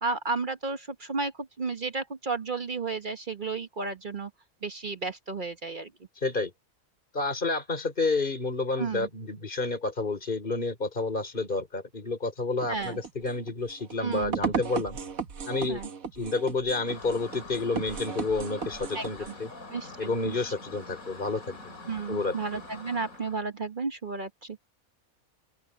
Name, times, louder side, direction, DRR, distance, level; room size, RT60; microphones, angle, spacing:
voice 1, 0.0-1.3 1.6-4.3 4.6-5.9 8.8-9.1 12.7-13.0 14.0-14.4 15.7-15.9 18.9-19.3 19.7-20.3 21.9-24.6, right 4 dB, 35° right, 1.2 m, -33 dB
voice 2, 6.2-6.5 7.1-15.0 15.5-15.8 16.1-19.5 20.0-21.7 22.1-22.4, left 3 dB, 35° left, 4.0 m, -30 dB
sound 1, 12.6-19.3, right 5 dB, 70° right, 1.8 m, -36 dB
sound 2, 16.8-23.4, left 3 dB, 70° left, 4.2 m, -45 dB
open air
omnidirectional pair, 1.5 m